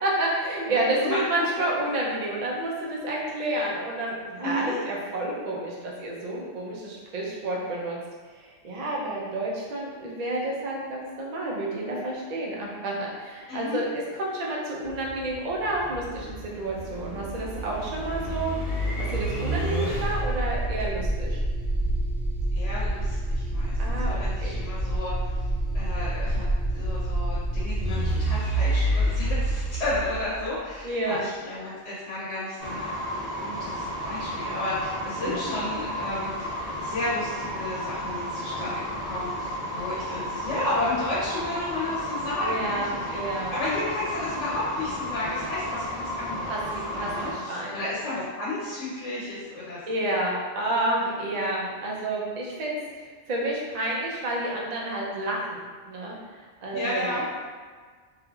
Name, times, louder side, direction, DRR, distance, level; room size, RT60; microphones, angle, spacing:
voice 1, 0.0-8.0 8.3-13.9 14.2-21.4 23.8-24.6 30.8-31.2 35.2-35.5 42.4-43.5 46.5-47.8 49.9-57.3, right 1 dB, 50° right, -3 dB, 0.5 m, -30 dB
voice 2, 0.7-1.5 4.4-4.8 13.5-13.8 22.6-25.4 25.7-26.5 26.7-32.9 33.3-46.5 46.9-49.8 56.7-57.2, left 2 dB, 75° left, -8 dB, 1.0 m, -32 dB
sound 1, 14.8-30.8, right 1 dB, 75° right, 1.2 m, -28 dB
sound 2, 32.6-47.3, equal, 35° right, 1.2 m, -33 dB
3.2 x 2.5 x 2.3 m, 1.6 s
omnidirectional pair, 1.2 m